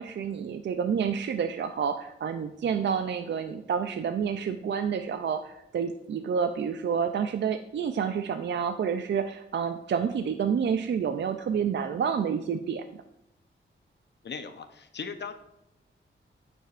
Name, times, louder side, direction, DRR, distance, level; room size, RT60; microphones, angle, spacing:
voice 1, 0.0-13.0, right 7 dB, 60° right, 7 dB, 0.4 m, -29 dB
voice 2, 14.2-15.3, left 5 dB, 55° left, 9 dB, 0.7 m, -38 dB
8.9 x 7.1 x 2.5 m, 0.86 s
wide cardioid pair, 120°, 21 cm